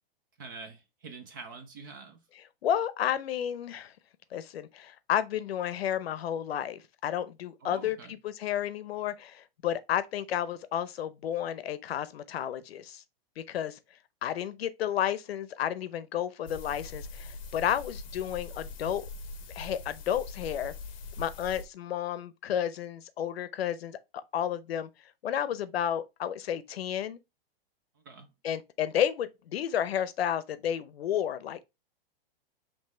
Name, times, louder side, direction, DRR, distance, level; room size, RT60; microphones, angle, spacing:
voice 1, 0.4-2.2 7.6-8.1 28.0-28.3, right 4 dB, 20° right, 0.4 m, -46 dB
voice 2, 2.6-3.9 4.3-13.0 13.4-13.8 14.2-19.1 19.5-20.7 21.2-24.9 25.2-27.2 28.4-31.6, left 10 dB, 80° left, 0.7 m, -32 dB
sound 1, 16.5-21.7, left 3 dB, 35° left, 0.7 m, -42 dB
5.5 x 3.1 x 3.0 m
hypercardioid pair, 170°, 30 cm